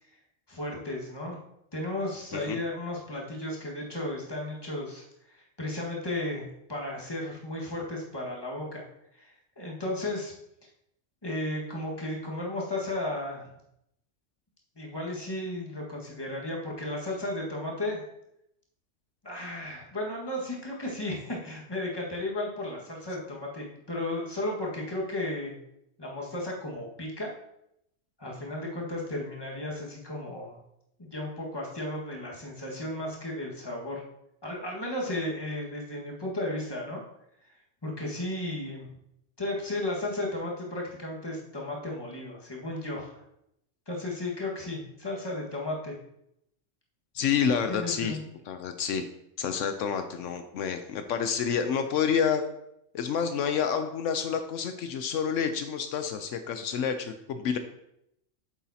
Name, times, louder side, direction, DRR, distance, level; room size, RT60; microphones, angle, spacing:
voice 1, 0.5-1.4 1.7-8.8 9.1-10.3 11.2-13.5 14.7-18.0 19.2-25.6 26.0-27.3 28.2-30.6 31.0-34.0 34.4-37.0 37.8-38.9 39.4-43.2 43.9-45.9 47.7-48.2, left 1 dB, 20° left, -3 dB, 1.6 m, -34 dB
voice 2, 47.1-48.2 48.5-49.1 49.4-52.4 52.9-57.6, left 7 dB, 80° left, 8 dB, 1.0 m, -28 dB
8.6 x 7.1 x 2.8 m, 0.80 s
omnidirectional pair, 1.3 m